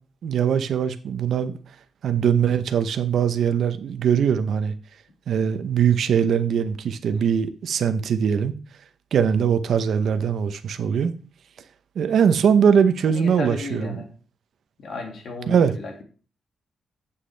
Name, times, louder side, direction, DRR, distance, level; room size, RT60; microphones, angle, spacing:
voice 1, 0.2-1.6 2.0-4.7 5.3-8.5 9.1-11.1 12.0-14.0 15.5-15.7, right 7 dB, 60° right, 0.7 m, -21 dB
voice 2, 13.1-14.1 14.8-16.0, left 3 dB, 55° left, 2.1 m, -34 dB
8.3 x 7.6 x 3.4 m
wide cardioid pair, 155°, 0 cm